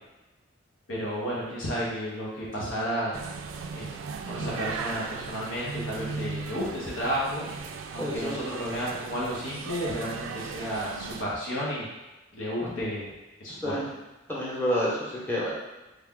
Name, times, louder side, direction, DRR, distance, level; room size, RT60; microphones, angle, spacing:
voice 1, 0.9-3.2 3.7-7.4 7.9-11.9 12.3-13.1 13.4-13.8, equal, 90° left, -5 dB, 0.9 m, -32 dB
sound 1, 3.1-11.2, right 5 dB, 80° right, 0.3 m, -37 dB
voice 2, 8.0-8.4 12.6-12.8 13.5-13.9 14.3-15.5, equal, 10° left, -6 dB, 0.8 m, -29 dB
3.3 x 2.3 x 3.6 m, 1.1 s
head